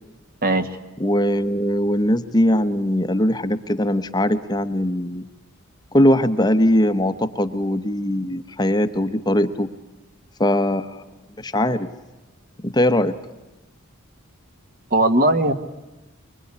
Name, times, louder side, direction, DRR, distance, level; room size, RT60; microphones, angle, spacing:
voice 1, 1.0-5.2 5.9-9.7 10.4-11.0 11.4-11.9 12.6-13.1, left 1 dB, 20° left, 9 dB, 0.9 m, -20 dB
voice 2, 14.9-15.5, right 1 dB, 45° right, 9 dB, 1.6 m, -18 dB
24.0 x 23.0 x 9.8 m, 1.0 s
head